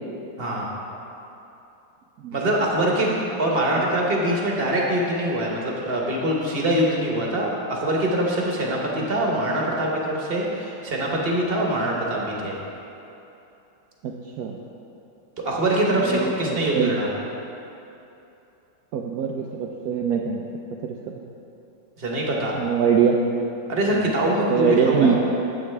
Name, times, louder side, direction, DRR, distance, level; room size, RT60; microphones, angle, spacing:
voice 1, 0.4-0.7 2.3-12.5 15.4-17.1 22.0-22.6 23.7-25.2, right 1 dB, 40° right, -2 dB, 1.0 m, -24 dB
voice 2, 14.0-14.6 16.1-16.9 18.9-20.4 20.8-21.0 22.6-23.2 23.9-24.1 24.5-25.2, right 7 dB, 85° right, 0 dB, 0.8 m, -23 dB
9.8 x 8.1 x 3.3 m, 2.9 s
omnidirectional pair, 2.1 m